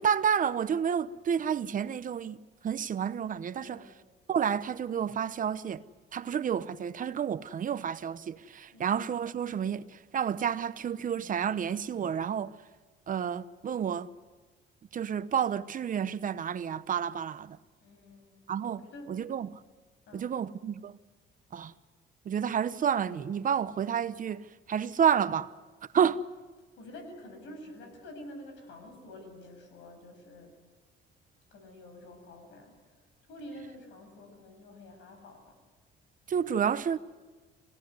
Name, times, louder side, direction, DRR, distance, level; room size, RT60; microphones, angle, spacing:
voice 1, 0.0-2.4 2.6-3.9 4.3-5.8 6.1-12.6 13.1-14.1 14.9-17.6 18.5-19.6 20.1-21.0 21.5-21.7 22.2-25.5 25.9-26.2 36.3-37.0, right 8 dB, 45° right, 0.9 m, -30 dB
voice 2, 3.6-3.9 8.7-9.0 17.8-18.4 18.8-19.1 20.1-20.3 26.8-30.5 31.5-32.7 33.3-35.6, left 1 dB, 85° left, 7.2 m, -48 dB
26.0 x 17.5 x 9.5 m
cardioid pair, 110°, 19 cm